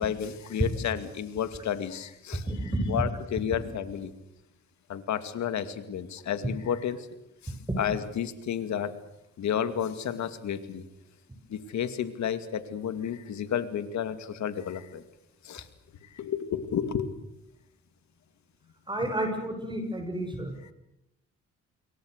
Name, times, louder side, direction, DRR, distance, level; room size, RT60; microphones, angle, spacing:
voice 1, 0.0-2.5 2.9-4.1 4.9-7.0 7.4-8.9 9.4-10.8 11.5-15.0 15.4-15.6 16.1-17.1, left 9 dB, 65° left, 10 dB, 2.4 m, -31 dB
voice 2, 18.9-20.5, right 1 dB, 15° right, 5 dB, 6.6 m, -31 dB
27.5 x 23.0 x 6.6 m, 0.86 s
cardioid pair, 90°, 30 cm